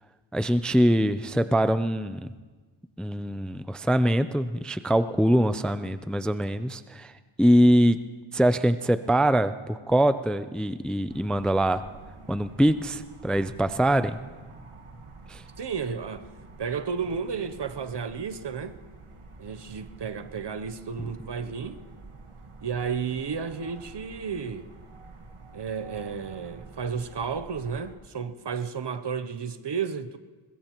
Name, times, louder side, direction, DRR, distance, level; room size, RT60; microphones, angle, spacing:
voice 1, 0.3-2.3 3.0-7.1 7.4-8.0 8.3-11.8 12.3-14.2 15.3-15.4 21.0-21.1, equal, ahead, 0.4 m, -23 dB
sound 1, 11.1-28.0, right 3 dB, 85° right, 1.6 m, -48 dB
voice 2, 15.6-16.3 16.6-18.7 19.4-21.8 22.6-24.7 25.5-30.2, right 6 dB, 55° right, 0.8 m, -32 dB
21.5 x 21.0 x 3.0 m
wide cardioid pair, 60°, 49 cm